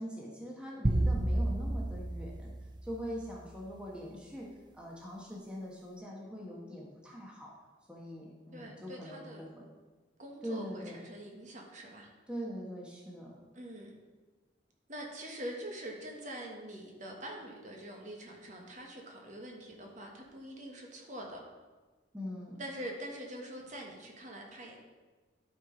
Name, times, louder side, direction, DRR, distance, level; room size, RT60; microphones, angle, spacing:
voice 1, 0.0-2.5 2.8-4.5 4.7-7.5 7.9-9.7 10.4-11.0 12.3-13.3 22.1-22.6, equal, 5° right, -3 dB, 1.2 m, -42 dB
sound 1, 0.8-3.3, right 1 dB, 25° right, 0.4 m, -31 dB
voice 2, 8.5-9.5 10.2-12.1 13.5-13.9 14.9-21.4 22.6-24.8, right 1 dB, 40° right, 0 dB, 1.4 m, -44 dB
11.5 x 4.6 x 5.1 m, 1.3 s
head